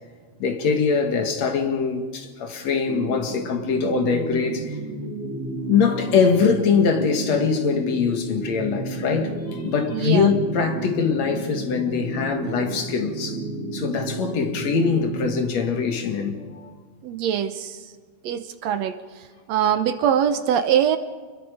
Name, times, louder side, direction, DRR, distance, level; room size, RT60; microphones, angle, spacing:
voice 1, 0.4-4.8 5.7-13.4 13.7-16.7, left 5 dB, 65° left, 2.9 m, -23 dB
sound 1, 2.9-15.4, right 2 dB, 50° right, 3.4 m, -32 dB
voice 2, 9.9-10.3 17.0-17.8 18.2-19.0 19.5-21.0, right 9 dB, 70° right, 1.9 m, -22 dB
29.0 x 22.0 x 5.1 m
omnidirectional pair, 3.4 m